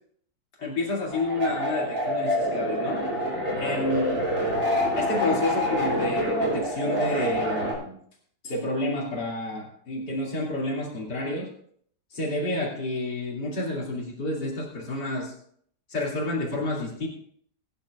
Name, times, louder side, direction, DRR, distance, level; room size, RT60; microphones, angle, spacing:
voice 1, 0.6-3.0 3.6-4.2 5.0-8.0 8.4-11.5 12.1-15.3 15.9-17.1, left 2 dB, 80° left, -4 dB, 3.4 m, -29 dB
sound 1, 1.1-7.7, equal, 40° right, 5.6 m, -26 dB
21.5 x 10.5 x 2.5 m, 0.63 s
omnidirectional pair, 1.8 m